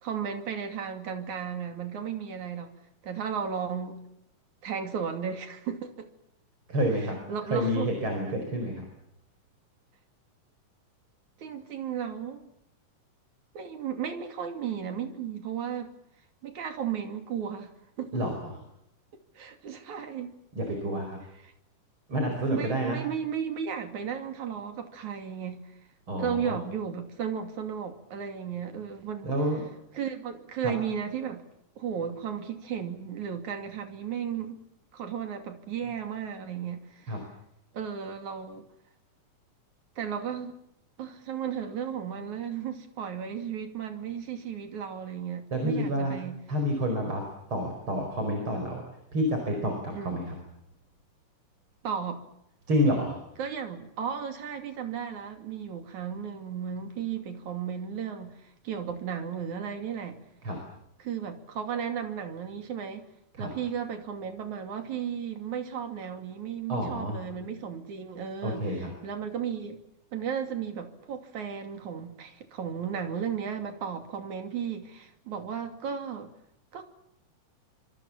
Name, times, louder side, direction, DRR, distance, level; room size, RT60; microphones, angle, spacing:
voice 1, 0.0-2.7 3.0-4.1 4.6-6.1 7.3-7.9 11.4-12.5 13.5-15.9 16.4-17.7 18.0-18.2 19.4-20.3 22.5-25.6 26.2-29.3 29.9-31.4 31.8-34.6 34.9-37.2 37.7-38.7 40.0-40.6 41.0-46.4 49.9-50.3 51.8-52.2 53.4-60.2 61.0-63.1 63.4-68.6 69.0-69.8 70.1-76.3 76.7-76.8, right 7 dB, 65° right, 3.9 m, -34 dB
voice 2, 6.7-7.2 7.4-8.9 18.1-18.6 20.5-21.2 22.1-23.0 26.1-26.6 29.2-29.6 30.6-30.7 37.1-37.2 45.5-46.2 46.5-48.8 49.1-50.4 52.7-53.2 60.4-60.6 63.3-63.5 66.7-67.2 68.4-68.9, equal, 40° right, 5.4 m, -29 dB
26.5 x 25.5 x 7.3 m
omnidirectional pair, 3.7 m